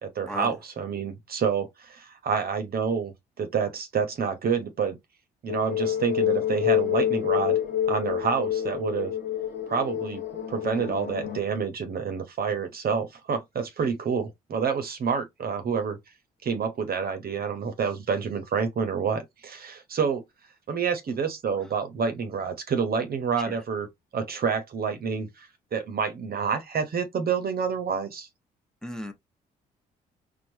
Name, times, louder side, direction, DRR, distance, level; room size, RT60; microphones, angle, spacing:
voice 1, 0.0-3.1 3.4-5.0 5.4-7.6 7.9-9.1 9.7-10.2 10.5-16.0 16.4-20.2 20.7-23.9 24.1-28.3, right 6 dB, 45° right, 1.0 m, -28 dB
sound 1, 5.5-11.4, left 10 dB, 55° left, 1.4 m, -27 dB
voice 2, 28.8-29.1, equal, 5° left, 1.1 m, -34 dB
4.5 x 2.5 x 2.7 m
hypercardioid pair, 45°, 21 cm